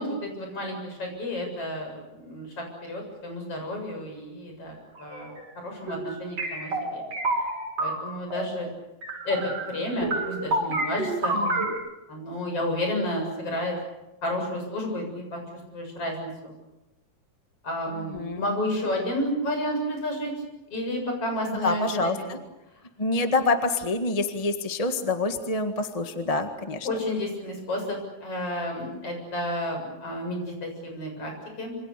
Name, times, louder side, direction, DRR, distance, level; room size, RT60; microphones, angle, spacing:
voice 1, 0.0-7.0 7.8-8.7 9.2-11.4 12.1-13.8 14.2-15.4 15.7-16.6 17.6-20.3 20.7-22.4 26.8-31.8, left 1 dB, 50° left, 3 dB, 8.4 m, -31 dB
sound 1, 4.9-5.4 5.9-8.5 9.0-9.8 10.0-11.7, right 2 dB, 55° right, 7.6 m, -29 dB
voice 2, 11.3-11.7 18.1-18.4 21.6-22.4 23.0-26.9, left 3 dB, 20° left, 6 dB, 1.1 m, -26 dB
27.0 x 26.0 x 6.9 m, 1.0 s
omnidirectional pair, 3.4 m